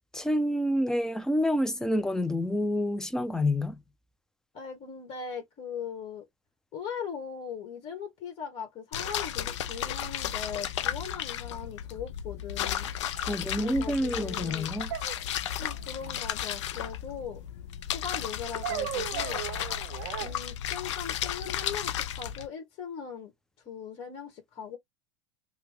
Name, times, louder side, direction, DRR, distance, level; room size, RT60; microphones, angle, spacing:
voice 1, 0.1-3.8 13.3-14.9, left 1 dB, 5° left, 0.5 m, -28 dB
voice 2, 4.5-6.2 6.7-12.9 13.6-14.7 15.6-17.4 17.9-19.4 20.2-23.3 23.6-24.8, left 7 dB, 40° left, 1.4 m, -40 dB
sound 1, 8.9-22.5, left 10 dB, 75° left, 0.5 m, -34 dB
sound 2, 13.2-13.3 14.9-15.8 18.6-20.3, right 12 dB, 60° right, 0.5 m, -36 dB
3.0 x 2.3 x 3.4 m
hypercardioid pair, 105°, 15 cm